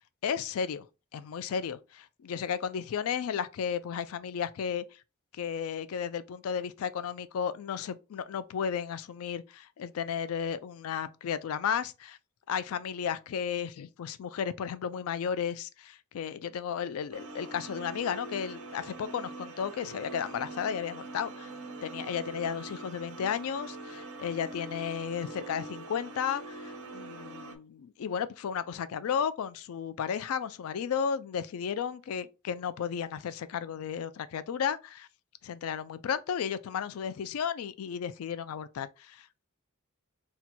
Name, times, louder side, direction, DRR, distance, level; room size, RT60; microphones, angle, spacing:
voice 1, 0.2-0.9 1.1-4.8 5.3-12.2 12.5-21.5 21.8-35.1 35.4-39.5, left 7 dB, 75° left, 0.3 m, -34 dB
sound 1, 17.1-27.5, right 2 dB, 80° right, 0.6 m, -43 dB
2.8 x 2.2 x 4.1 m
head